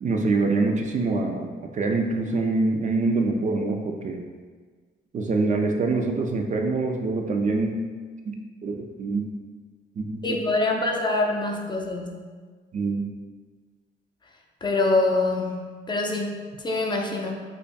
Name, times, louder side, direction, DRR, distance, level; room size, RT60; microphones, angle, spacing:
voice 1, 0.0-4.3 5.1-7.8 8.3-8.4 8.6-9.3 10.0-10.4 12.7-13.1, right 3 dB, 40° right, 3 dB, 0.4 m, -25 dB
voice 2, 10.2-12.1 14.6-17.3, left 2 dB, 20° left, 1 dB, 0.4 m, -25 dB
5.0 x 2.3 x 2.2 m, 1.5 s
cardioid pair, 90°, 20 cm